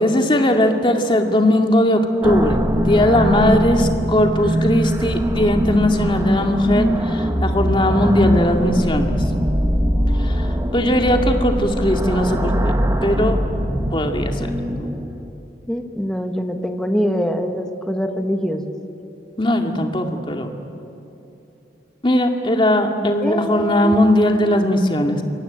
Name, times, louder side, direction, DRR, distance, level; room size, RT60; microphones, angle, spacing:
voice 1, 0.0-9.2 10.2-12.7 13.0-13.4 13.9-14.5 19.4-20.5 22.0-25.2, left 1 dB, 30° left, 3 dB, 2.2 m, -18 dB
sound 1, 2.2-15.3, equal, 20° right, 1.4 m, -21 dB
voice 2, 15.7-18.7 23.2-24.0, equal, 5° left, 5 dB, 1.5 m, -24 dB
27.5 x 23.5 x 8.8 m, 2.9 s
head